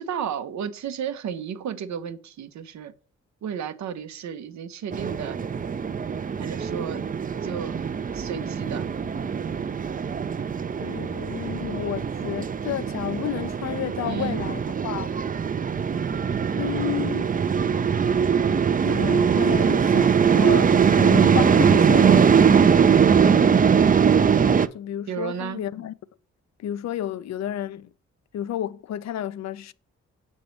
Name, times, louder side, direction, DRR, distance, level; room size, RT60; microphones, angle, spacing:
voice 1, 0.0-2.9 3.4-5.4 6.4-7.0 7.3-7.9 8.1-8.9 14.0-14.4 25.1-25.6, right 8 dB, 70° right, 0.7 m, -33 dB
sound 1, 4.9-24.7, right 7 dB, 30° right, 0.5 m, -21 dB
voice 2, 10.8-15.1 16.6-17.4 18.8-22.7 24.7-25.9 26.6-27.9 28.3-29.7, left 11 dB, 65° left, 0.5 m, -31 dB
6.8 x 5.4 x 3.1 m
supercardioid pair, 55°, 29 cm